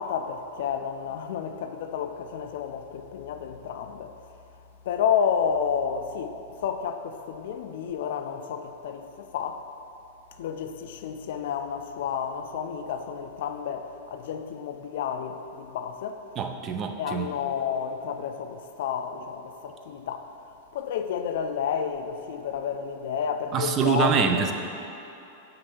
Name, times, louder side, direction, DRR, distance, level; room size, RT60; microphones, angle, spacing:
voice 1, 0.0-4.1 4.9-9.7 10.4-16.2 17.0-20.3 20.7-24.5, left 7 dB, 70° left, 0.4 m, -30 dB
voice 2, 16.4-17.3 23.5-24.5, right 6 dB, 35° right, 0.5 m, -25 dB
7.7 x 2.7 x 5.7 m
hypercardioid pair, 125°, 0 cm